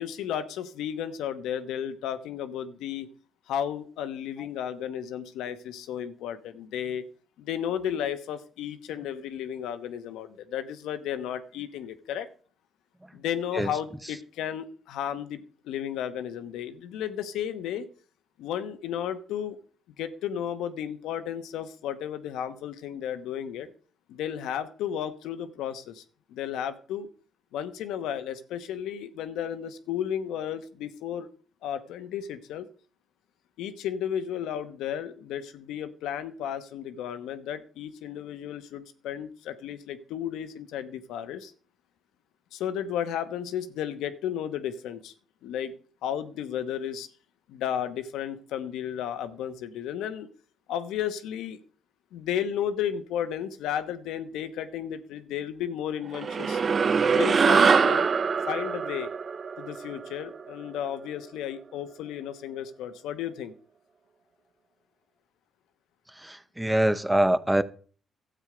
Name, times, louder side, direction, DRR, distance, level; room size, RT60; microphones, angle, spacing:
voice 1, 0.0-3.1 3.5-7.0 7.4-12.3 13.1-17.9 18.4-19.6 20.0-23.7 24.1-26.0 26.3-27.1 27.5-31.3 31.6-32.7 33.6-41.5 42.5-45.1 45.4-45.7 46.0-47.1 47.5-50.3 50.7-51.6 52.1-56.6 57.1-58.1 58.5-59.1 59.6-63.5, left 9 dB, 90° left, 1.1 m, -33 dB
sound 1, 56.1-60.8, right 5 dB, 40° right, 0.5 m, -24 dB
voice 2, 66.2-67.6, right 1 dB, 10° right, 0.7 m, -24 dB
12.5 x 8.2 x 5.0 m
cardioid pair, 90°, 0 cm